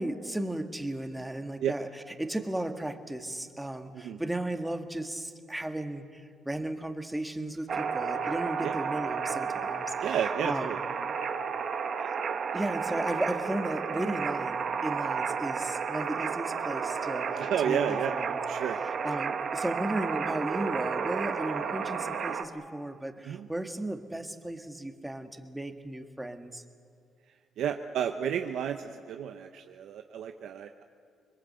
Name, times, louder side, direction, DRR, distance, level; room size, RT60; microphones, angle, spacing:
voice 1, 0.0-1.9 2.2-10.2 10.4-10.7 12.0-12.1 12.5-18.4 19.0-26.6, right 1 dB, 10° right, 7 dB, 1.7 m, -35 dB
sound 1, 7.7-22.4, right 6 dB, 50° right, 1.4 m, -32 dB
voice 2, 10.0-10.8 17.4-18.1 18.4-18.8 23.2-23.5 27.6-30.8, right 8 dB, 75° right, 6 dB, 0.9 m, -31 dB
25.5 x 21.5 x 7.9 m, 2.3 s
cardioid pair, 95°, 0 cm